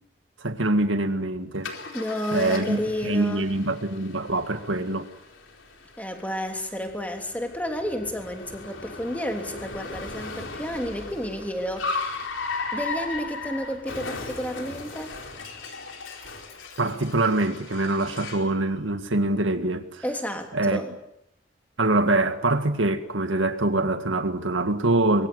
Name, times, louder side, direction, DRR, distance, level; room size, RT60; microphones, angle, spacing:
voice 1, 0.4-1.7 2.3-5.1 16.8-20.0 20.5-20.8 21.8-25.3, right 2 dB, 85° right, 2.0 m, -24 dB
Car, 1.6-18.5, left 3 dB, 90° left, 4.3 m, -37 dB
voice 2, 1.9-3.5 6.0-12.2 12.7-15.1 20.0-20.9, equal, 10° left, 3.1 m, -31 dB
24.5 x 23.0 x 8.2 m
head